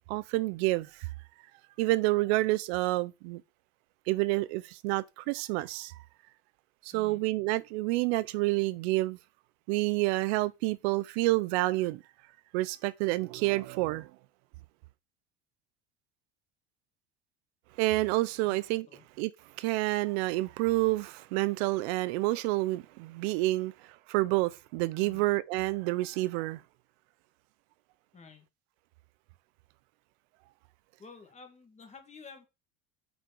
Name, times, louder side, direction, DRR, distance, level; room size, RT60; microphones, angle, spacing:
voice 1, 0.1-1.1 1.8-3.4 4.1-5.9 6.8-9.2 9.7-12.0 12.5-14.1 17.8-18.8 19.2-19.3 19.6-26.6, right 19 dB, 75° right, 0.7 m, -29 dB
voice 2, 6.9-7.2 18.4-18.6 18.9-19.0 25.0-25.2 28.1-28.5 31.0-32.4, left 4 dB, 20° left, 2.2 m, -51 dB
6.1 x 5.2 x 6.0 m
supercardioid pair, 125°, 33 cm